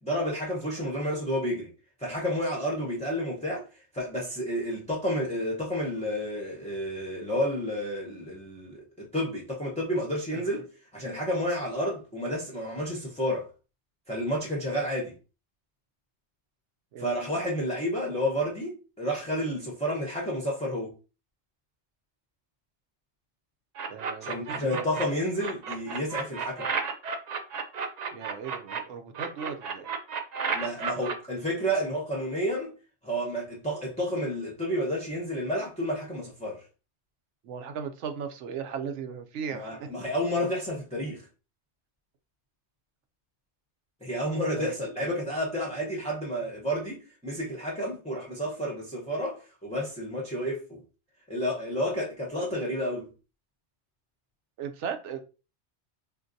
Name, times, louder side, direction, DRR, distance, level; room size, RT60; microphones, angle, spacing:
voice 1, 0.0-1.7 2.0-3.7 3.9-10.6 10.9-13.5 14.1-15.1 17.0-20.9 24.2-26.7 30.5-32.8 33.0-36.6 39.5-41.2 44.0-50.8 51.3-53.1, equal, 10° left, 0.6 m, -30 dB
sound 1, 23.8-25.0 25.4-28.8 29.1-31.1, right 5 dB, 60° right, 0.4 m, -32 dB
voice 2, 23.9-24.9 28.1-29.9 37.4-39.9 44.6-44.7 54.6-55.2, right 7 dB, 90° right, 0.9 m, -37 dB
3.7 x 2.5 x 2.5 m
omnidirectional pair, 1.2 m